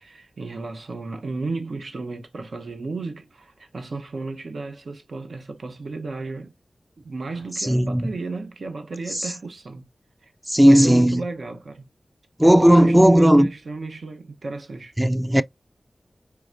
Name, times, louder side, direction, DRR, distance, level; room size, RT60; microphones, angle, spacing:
voice 1, 0.0-6.5 7.0-9.8 10.2-10.3 10.6-11.9 12.4-14.9, right 3 dB, 80° right, 0.7 m, -33 dB
voice 2, 7.7-8.1 10.5-11.2 12.4-13.5 15.0-15.4, equal, 15° right, 0.3 m, -15 dB
4.6 x 3.4 x 2.5 m
cardioid pair, 50°, 0 cm